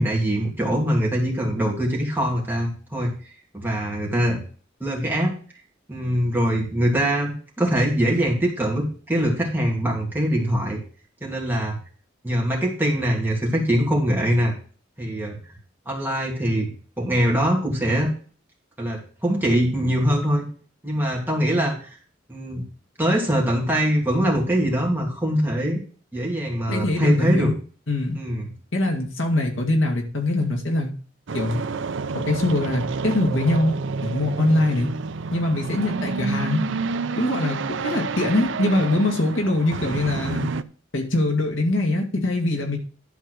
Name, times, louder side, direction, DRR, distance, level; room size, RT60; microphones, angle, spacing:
voice 1, 0.0-3.1 3.5-4.4 4.8-5.4 5.9-10.8 11.2-11.8 12.2-14.5 15.0-15.3 15.9-16.7 17.0-18.1 18.8-20.4 20.8-21.9 22.3-22.6 23.0-25.8 26.1-27.5 28.1-28.5, equal, 10° right, -2 dB, 2.8 m, -23 dB
voice 2, 26.7-27.5 27.9-28.2 28.7-30.9 31.3-31.6 32.1-33.7 34.0-34.9 35.3-36.6 37.2-40.5 40.9-42.8, left 2 dB, 75° left, 1 dB, 2.2 m, -23 dB
sound 1, 31.3-40.6, right 4 dB, 70° right, 0.5 m, -29 dB
11.5 x 4.6 x 6.4 m, 0.41 s
head